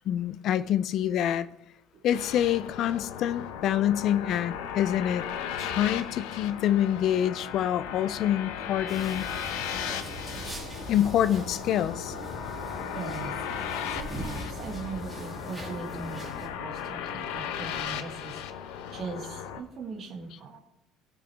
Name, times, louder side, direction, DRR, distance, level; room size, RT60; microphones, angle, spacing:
voice 1, 0.1-1.5 2.0-5.2 5.6-9.6 10.9-12.1, left 10 dB, 40° left, 14 dB, 0.4 m, -26 dB
sound 1, 2.1-19.6, left 8 dB, 80° left, 0.9 m, -36 dB
sound 2, 8.9-16.5, right 1 dB, ahead, 2.4 m, -41 dB
voice 2, 12.9-13.3 13.9-18.4 18.9-20.6, right 4 dB, 30° right, -2 dB, 1.6 m, -39 dB
19.0 x 6.3 x 3.4 m, 0.81 s
cardioid pair, 170°, 0 cm